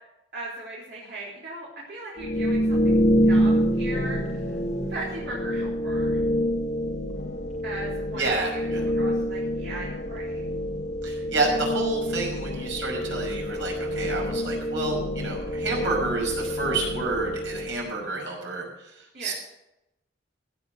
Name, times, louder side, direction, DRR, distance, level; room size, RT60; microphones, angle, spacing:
voice 1, 0.3-4.4 4.9-6.2 7.6-10.4 19.1-19.3, right 2 dB, 60° right, -7 dB, 3.6 m, -38 dB
sound 1, 2.2-18.0, equal, 40° left, 1.4 m, -26 dB
voice 2, 8.1-8.8 11.0-18.7 19.2-19.3, right 3 dB, 85° right, -1 dB, 5.6 m, -29 dB
16.0 x 8.0 x 6.5 m, 0.89 s
head